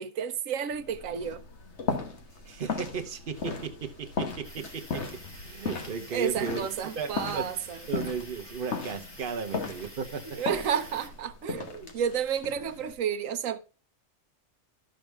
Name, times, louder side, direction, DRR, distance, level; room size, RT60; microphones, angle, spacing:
voice 1, 0.0-1.4 6.1-7.8 10.3-13.6, right 8 dB, 75° right, 1.1 m, -31 dB
sound 1, 0.7-12.9, left 4 dB, 55° left, 1.6 m, -37 dB
voice 2, 2.5-5.1 5.3-6.6 7.0-7.5 7.9-10.4, right 6 dB, 45° right, 1.0 m, -35 dB
sound 2, 4.4-11.1, left 1 dB, 20° left, 1.4 m, -49 dB
12.0 x 6.3 x 3.4 m
omnidirectional pair, 1.4 m